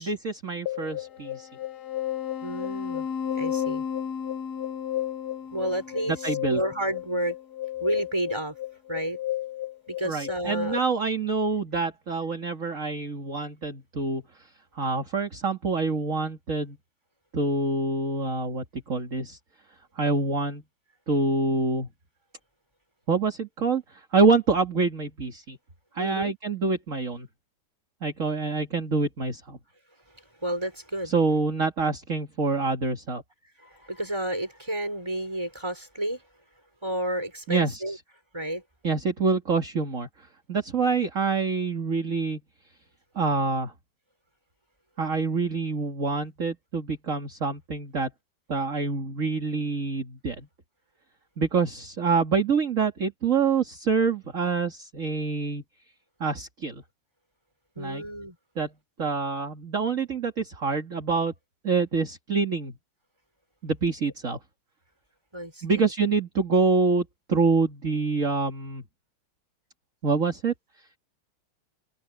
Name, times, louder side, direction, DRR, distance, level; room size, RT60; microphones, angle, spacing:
voice 1, 0.0-1.5 6.1-6.6 10.0-14.2 14.7-16.8 17.3-19.4 20.0-20.6 21.1-21.9 23.1-25.6 25.9-27.3 28.0-29.6 31.0-33.2 37.5-38.0 38.8-42.4 43.2-43.7 45.0-48.1 48.5-50.5 51.4-55.6 56.2-56.8 57.8-58.0 58.6-58.7 59.0-61.3 61.6-62.7 63.6-64.4 65.6-68.8 70.0-70.5, right 4 dB, 40° right, 2.5 m, -26 dB
sound 1, 0.7-10.8, left 10 dB, 55° left, 1.8 m, -32 dB
voice 2, 2.4-3.1 3.3-3.8 5.5-6.2 6.5-7.4 7.8-8.5 8.9-9.2 9.9-10.7 26.0-26.3 30.4-31.1 33.6-36.2 36.8-38.0 38.3-38.6 57.8-58.4 65.3-65.9, right 1 dB, 15° right, 5.8 m, -31 dB
omnidirectional pair, 2.1 m